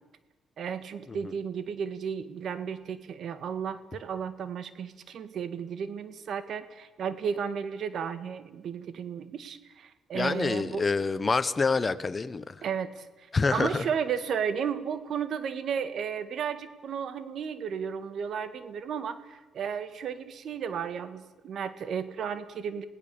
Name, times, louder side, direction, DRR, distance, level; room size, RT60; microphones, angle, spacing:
voice 1, 0.6-10.8 12.6-13.3 13.5-22.8, right 7 dB, 65° right, 1.7 m, -33 dB
voice 2, 10.1-12.6 13.3-13.9, left 4 dB, 30° left, 1.3 m, -27 dB
27.5 x 17.5 x 7.0 m
cardioid pair, 90°, 0 cm